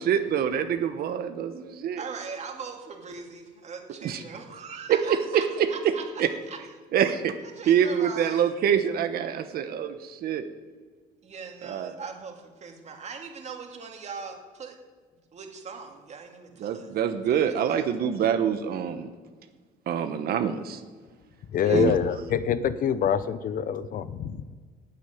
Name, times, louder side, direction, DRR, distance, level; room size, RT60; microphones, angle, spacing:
voice 1, 0.0-2.0 4.0-4.2 4.9-5.7 6.2-6.3 6.9-7.3 7.7-10.4 11.6-11.9 16.6-19.1 19.9-20.8 21.7-21.9, right 8 dB, 65° right, 8 dB, 1.1 m, -25 dB
voice 2, 2.0-6.0 6.5-6.6 7.6-8.5 11.2-14.7 15.3-16.9 17.3-17.9 21.6-21.9, right 5 dB, 40° right, 3 dB, 2.5 m, -40 dB
voice 3, 21.5-24.5, left 8 dB, 55° left, 14 dB, 0.8 m, -26 dB
10.5 x 8.3 x 9.2 m, 1.5 s
cardioid pair, 110°, 17 cm